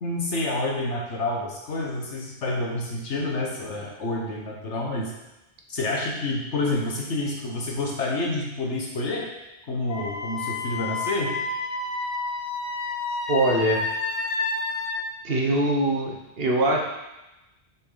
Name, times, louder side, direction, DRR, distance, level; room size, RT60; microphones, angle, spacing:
voice 1, 0.0-5.1 5.7-9.3 9.7-11.4, left 2 dB, 85° left, -1 dB, 1.7 m, -28 dB
Wind instrument woodwind instrument, 9.9-14.9, left 3 dB, 35° left, 1.0 m, -29 dB
voice 2, 13.3-13.9 15.2-16.8, right 1 dB, 60° right, 0 dB, 1.3 m, -23 dB
7.2 x 6.2 x 4.0 m, 0.98 s
omnidirectional pair, 1.1 m